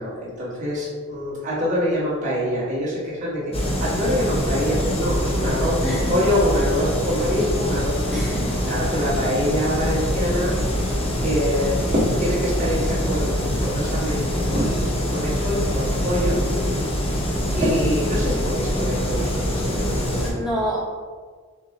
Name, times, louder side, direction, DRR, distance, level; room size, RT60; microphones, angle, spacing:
voice 1, 0.0-10.5 11.2-16.4 17.5-20.3, equal, 35° right, -9 dB, 1.4 m, -25 dB
sound 1, 3.5-20.3, equal, 25° left, 0.6 m, -24 dB
voice 2, 5.8-6.2 8.1-8.5 20.2-20.9, equal, ahead, -7 dB, 1.0 m, -27 dB
6.5 x 2.2 x 2.8 m, 1.5 s
head